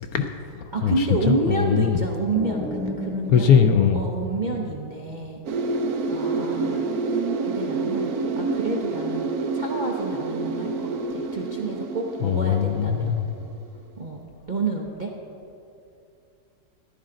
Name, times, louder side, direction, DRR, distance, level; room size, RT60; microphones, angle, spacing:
voice 1, 0.1-2.0 3.3-4.0 12.2-13.3, left 8 dB, 70° left, 6 dB, 0.9 m, -21 dB
voice 2, 0.7-5.4 6.1-7.2 7.5-13.1 14.0-15.1, right 3 dB, 45° right, -1 dB, 0.6 m, -29 dB
sound 1, 2.3-5.1, left 1 dB, 5° left, 0.5 m, -34 dB
sound 2, 5.5-13.5 13.8-13.9, right 3 dB, 65° right, 1.1 m, -28 dB
14.5 x 11.0 x 3.8 m, 2.6 s
omnidirectional pair, 1.9 m